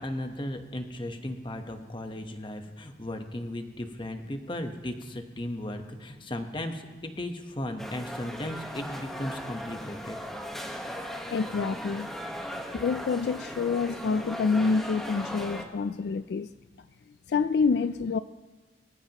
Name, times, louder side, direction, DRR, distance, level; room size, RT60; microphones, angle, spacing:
voice 1, 0.0-10.2, left 1 dB, 25° left, 6 dB, 1.1 m, -36 dB
sound 1, 7.8-15.6, equal, ahead, 1.2 m, -38 dB
voice 2, 11.3-12.1 12.7-16.5 17.3-18.2, left 4 dB, 65° left, 12 dB, 0.3 m, -27 dB
24.5 x 14.5 x 3.0 m, 1.4 s
head